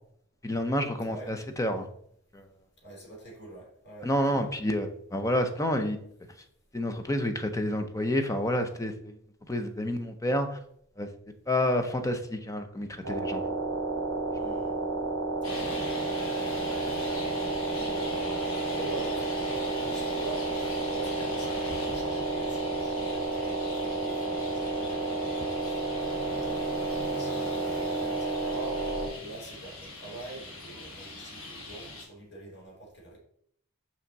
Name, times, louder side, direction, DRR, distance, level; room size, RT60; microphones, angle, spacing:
voice 1, 0.4-1.9 2.3-2.5 4.0-6.0 6.7-9.2 9.5-10.6 11.0-11.1 11.5-13.4 14.5-14.6, left 1 dB, 15° left, 7 dB, 0.6 m, -29 dB
voice 2, 1.0-1.4 2.8-4.5 14.4-14.9 15.4-17.2 17.5-33.2, right 2 dB, 50° left, -2 dB, 2.8 m, -45 dB
sound 1, 13.0-29.1, right 3 dB, 75° right, 0.9 m, -31 dB
Traffic noise roadway noise, 15.4-32.0, left 2 dB, 65° left, 1.6 m, -42 dB
5.9 x 5.7 x 4.0 m, 0.69 s
head